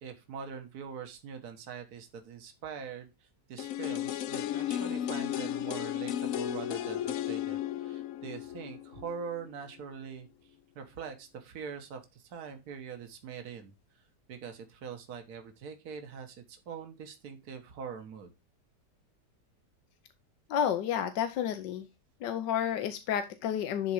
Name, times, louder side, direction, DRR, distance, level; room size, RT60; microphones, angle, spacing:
voice 1, 0.0-3.1 3.5-13.7 14.3-18.3, right 6 dB, 65° right, 6 dB, 1.8 m, -43 dB
sound 1, 3.6-9.5 9.8-9.9, left 11 dB, 70° left, 0.8 m, -34 dB
voice 2, 20.5-21.9 22.2-23.9, left 9 dB, 85° left, 9 dB, 1.4 m, -30 dB
11.5 x 4.0 x 4.8 m, 0.25 s
omnidirectional pair, 1.8 m